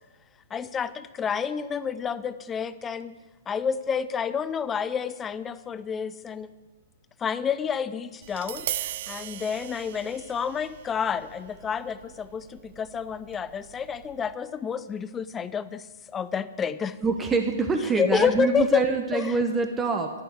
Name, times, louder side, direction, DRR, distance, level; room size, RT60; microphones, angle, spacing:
voice 1, 0.5-3.2 3.5-6.5 7.2-15.9 16.1-17.0 17.8-19.4, left 7 dB, 15° left, 16 dB, 0.5 m, -29 dB
Tap, 8.2-14.3, right 12 dB, 45° right, 0.5 m, -39 dB
voice 2, 17.0-20.1, right 4 dB, 15° right, 5 dB, 1.0 m, -25 dB
12.5 x 11.0 x 6.2 m, 1.2 s
figure-of-eight pair, 115°, 0 cm